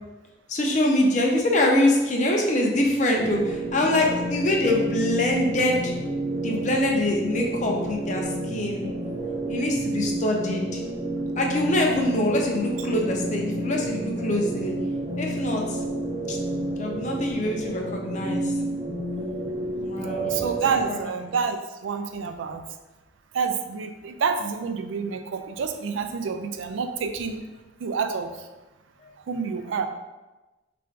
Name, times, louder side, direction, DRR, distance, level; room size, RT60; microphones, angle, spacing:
voice 1, 0.5-6.0 6.4-8.9 9.5-10.8 11.4-14.7 15.2-15.8 16.3-16.4 16.8-18.5 19.8-20.4 20.9-21.0, left 1 dB, 40° left, 1 dB, 0.6 m, -24 dB
sound 1, 3.2-20.8, right 1 dB, 20° right, 0.7 m, -30 dB
voice 2, 20.3-21.6 21.8-22.6 23.3-27.4 27.8-28.3 29.3-29.9, right 5 dB, 85° right, 7 dB, 0.4 m, -28 dB
3.3 x 2.6 x 4.5 m, 1.1 s
head